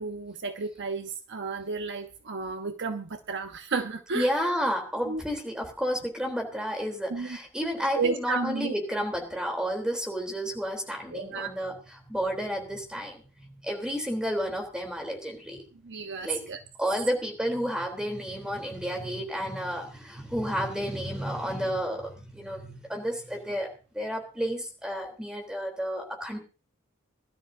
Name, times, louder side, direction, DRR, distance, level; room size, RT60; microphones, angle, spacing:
voice 1, 0.0-4.3 5.0-5.2 7.1-7.4 7.9-8.7 11.1-11.5 15.8-16.6, right 4 dB, 55° right, 7 dB, 1.1 m, -32 dB
voice 2, 4.1-13.2 13.6-15.6 16.2-16.4 16.8-23.7 23.9-26.4, equal, 5° right, 2 dB, 3.5 m, -31 dB
22.0 x 12.5 x 2.8 m, 0.34 s
head